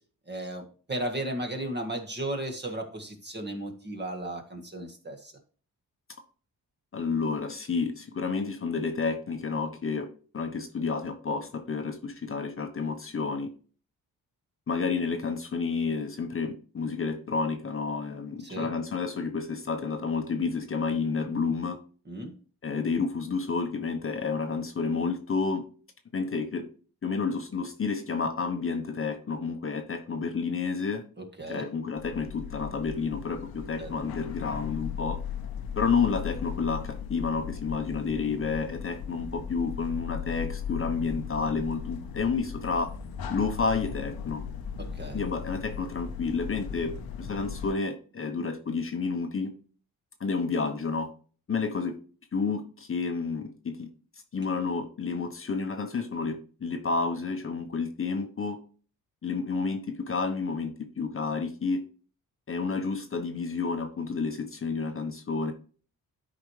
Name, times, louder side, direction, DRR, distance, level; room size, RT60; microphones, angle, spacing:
voice 1, 0.3-5.3 18.4-18.7 22.1-22.3 31.4-31.7 33.8-33.9 44.8-45.2, right 1 dB, 30° right, 3 dB, 1.8 m, -35 dB
voice 2, 6.9-10.1 10.3-13.5 14.7-21.8 22.6-25.6 26.1-26.7 27.0-31.0 31.5-35.2 35.8-42.9 43.3-44.4 45.1-46.9 47.2-49.5 50.2-51.1 51.5-52.0 52.3-53.9 54.3-58.6 59.2-61.8 62.5-65.5, left 4 dB, 35° left, 6 dB, 1.0 m, -30 dB
sound 1, 32.0-47.7, left 7 dB, 85° left, 1.0 m, -37 dB
12.0 x 4.9 x 3.2 m, 0.41 s
cardioid pair, 105°, 36 cm